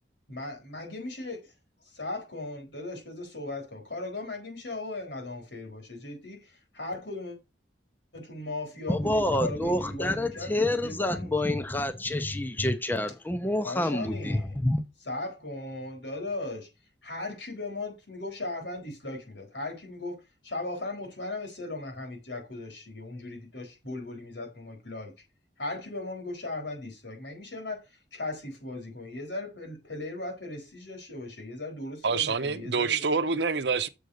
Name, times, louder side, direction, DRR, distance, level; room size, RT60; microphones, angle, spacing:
voice 1, 0.3-1.4 1.9-7.4 8.1-11.4 13.6-14.6 15.1-16.7 17.0-25.1 25.6-27.8 28.1-33.0, left 2 dB, 90° left, 4.2 m, -37 dB
voice 2, 8.9-14.8, left 1 dB, 10° left, 0.6 m, -28 dB
voice 3, 32.0-33.9, right 5 dB, 75° right, 0.8 m, -26 dB
6.9 x 5.2 x 6.5 m
head